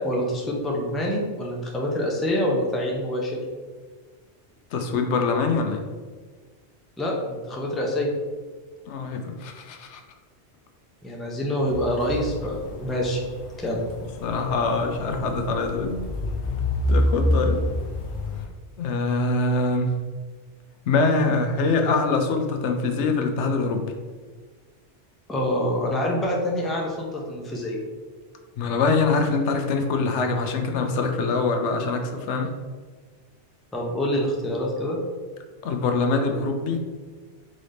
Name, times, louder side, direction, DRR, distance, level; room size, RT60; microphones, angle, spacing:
voice 1, 0.0-3.4 7.0-8.1 11.0-13.2 13.6-13.8 25.3-27.8 33.7-35.0, equal, ahead, -2 dB, 0.5 m, -26 dB
voice 2, 4.7-5.8 8.9-10.0 14.2-16.1 16.9-17.6 18.8-20.0 20.9-23.8 28.6-32.5 35.6-36.8, left 3 dB, 80° left, 4 dB, 0.9 m, -24 dB
sound 1, 11.7-18.4, left 1 dB, 55° left, 0.8 m, -28 dB
4.0 x 3.8 x 3.4 m, 1.5 s
omnidirectional pair, 1.2 m